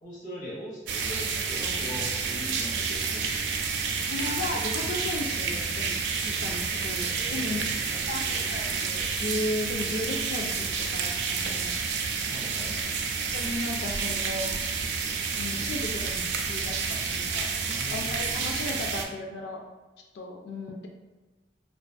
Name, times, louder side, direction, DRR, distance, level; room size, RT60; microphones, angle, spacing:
voice 1, 0.0-3.3 7.0-8.5 12.3-13.2 17.5-19.0, equal, 45° left, -7 dB, 0.8 m, -42 dB
sound 1, 0.9-19.1, right 5 dB, 75° right, 0.3 m, -30 dB
voice 2, 4.0-7.6 8.1-11.7 13.3-14.5 15.4-17.5 17.9-19.6 20.1-20.9, left 2 dB, 65° left, 1 dB, 0.3 m, -35 dB
2.5 x 2.3 x 2.2 m, 1.2 s
head